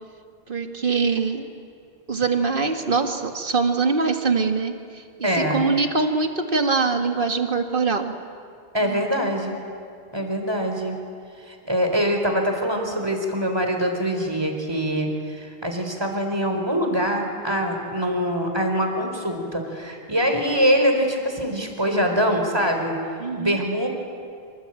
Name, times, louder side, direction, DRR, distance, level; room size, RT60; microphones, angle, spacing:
voice 1, 0.5-1.5 2.1-8.1 8.8-9.0 23.2-23.6, right 4 dB, 50° right, 6 dB, 2.0 m, -23 dB
voice 2, 5.2-5.6 8.7-9.6 10.1-11.0 11.5-23.0 23.4-23.9, equal, 20° right, 3 dB, 4.1 m, -24 dB
26.5 x 25.0 x 9.0 m, 2.3 s
omnidirectional pair, 1.2 m